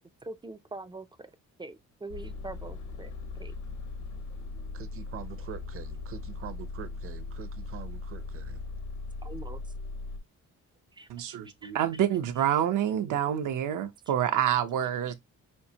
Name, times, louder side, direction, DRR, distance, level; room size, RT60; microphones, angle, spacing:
voice 1, 0.2-1.3 1.6-3.6 9.2-9.6 10.9-11.1 11.5-11.7, right 2 dB, 15° right, 0.3 m, -43 dB
sound 1, 2.1-10.2, left 3 dB, 75° left, 1.1 m, -39 dB
voice 2, 4.7-8.6, right 9 dB, 45° right, 0.7 m, -44 dB
voice 3, 11.1-15.1, right 10 dB, 80° right, 0.8 m, -27 dB
5.5 x 2.7 x 2.8 m
cardioid pair, 160°, 30 cm